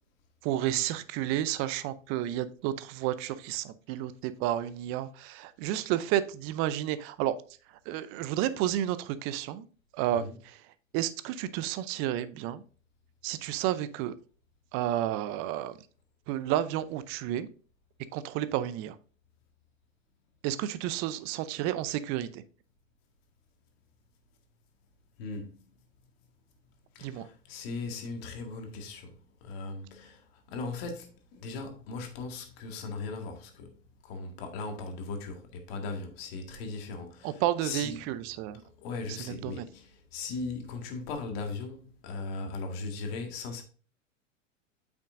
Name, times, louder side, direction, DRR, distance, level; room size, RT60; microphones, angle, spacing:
voice 1, 0.4-7.4 7.9-9.7 9.9-10.6 10.9-12.6 13.2-14.1 14.7-15.7 16.3-17.5 18.1-19.0 20.4-22.4 27.0-27.3 37.2-38.6 39.1-39.6, right 12 dB, 35° right, 0.6 m, -31 dB
voice 2, 25.2-25.6 27.0-33.8 34.0-38.0 38.8-43.6, left 3 dB, 50° left, 1.9 m, -38 dB
8.4 x 6.0 x 2.6 m
hypercardioid pair, 105°, 39 cm